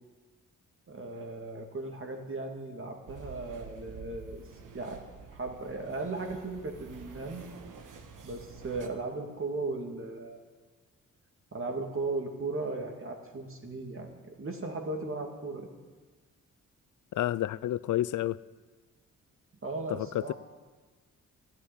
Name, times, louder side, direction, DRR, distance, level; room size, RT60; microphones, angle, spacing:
voice 1, 0.9-4.4 4.7-7.5 8.2-10.4 11.5-15.7 19.6-20.3, right 3 dB, 40° right, 3 dB, 2.4 m, -37 dB
sound 1, 3.1-8.9, right 5 dB, 75° right, 1.3 m, -48 dB
voice 2, 17.2-18.4 19.9-20.3, left 13 dB, 65° left, 20 dB, 0.5 m, -30 dB
12.5 x 8.2 x 9.9 m, 1.4 s
cardioid pair, 65°, 32 cm